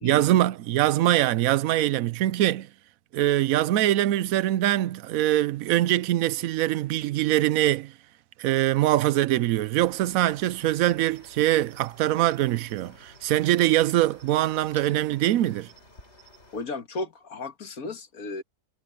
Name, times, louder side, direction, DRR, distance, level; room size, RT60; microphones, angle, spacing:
voice 1, 0.0-2.7 3.1-7.9 8.4-15.7, right 14 dB, 70° right, 0.9 m, -23 dB
Cricket, 9.7-16.7, equal, 45° left, 6.7 m, -53 dB
voice 2, 16.5-18.4, left 3 dB, 65° left, 2.1 m, -34 dB
omnidirectional pair, 1.6 m